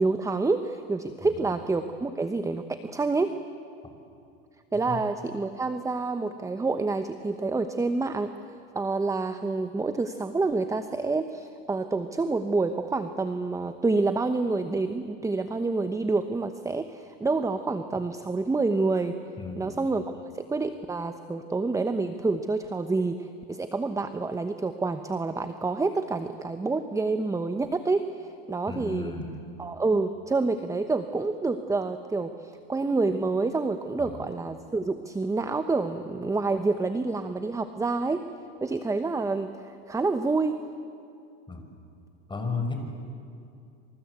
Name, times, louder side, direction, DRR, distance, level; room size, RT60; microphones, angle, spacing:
voice 1, 0.0-3.4 4.7-8.3 8.7-19.2 19.6-29.1 29.6-38.2 38.6-40.6, right 3 dB, 10° right, 9 dB, 1.0 m, -28 dB
voice 2, 1.2-1.6 4.9-5.0 19.4-19.7 28.7-29.3 34.0-34.2 41.5-41.6 42.3-42.8, left 4 dB, 15° left, 4 dB, 5.7 m, -34 dB
26.5 x 26.0 x 8.2 m, 2.5 s
supercardioid pair, 115°, 32 cm